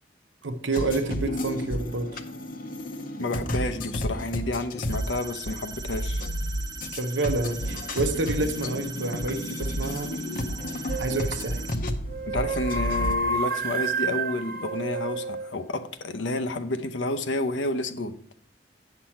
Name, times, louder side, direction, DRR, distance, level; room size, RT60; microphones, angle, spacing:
voice 1, 0.4-2.2 6.9-10.2 11.0-11.6, right 2 dB, 85° right, 7 dB, 0.8 m, -28 dB
sound 1, 0.7-13.2, equal, 50° left, 0.7 m, -32 dB
voice 2, 3.2-6.2 12.3-18.2, left 2 dB, 85° left, 9 dB, 0.7 m, -30 dB
sound 2, 4.9-11.8, right 5 dB, 20° right, 0.7 m, -41 dB
sound 3, 10.9-11.3 12.1-15.5, right 3 dB, 50° right, 0.8 m, -29 dB
8.7 x 6.1 x 4.4 m, 0.62 s
head